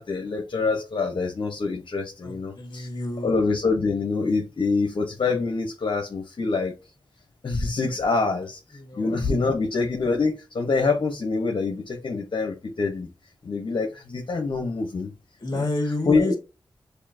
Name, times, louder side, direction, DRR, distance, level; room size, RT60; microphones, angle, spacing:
voice 1, 0.0-2.9 3.2-6.7 7.4-13.1 13.4-15.1 16.1-16.4, left 4 dB, 65° left, 1.1 m, -25 dB
voice 2, 2.2-3.3 8.7-9.2 9.5-9.6 15.4-16.4, left 2 dB, 45° left, 2.0 m, -30 dB
6.6 x 2.7 x 2.7 m
cardioid pair, 60°, 9 cm